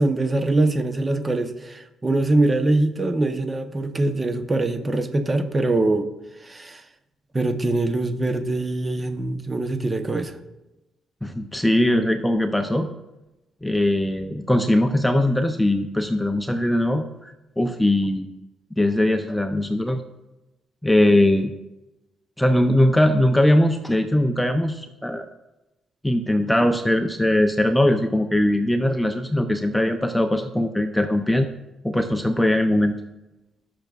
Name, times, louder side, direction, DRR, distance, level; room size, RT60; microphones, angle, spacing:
voice 1, 0.0-6.1 6.4-6.8 7.3-10.3, right 2 dB, 25° right, 8 dB, 0.9 m, -23 dB
voice 2, 11.2-12.9 13.6-18.3 18.8-20.0 20.8-21.5 22.4-25.3 26.0-31.5 31.8-33.0, left 1 dB, 5° left, 6 dB, 0.6 m, -20 dB
18.5 x 6.5 x 2.5 m, 0.99 s
cardioid pair, 90°, 0 cm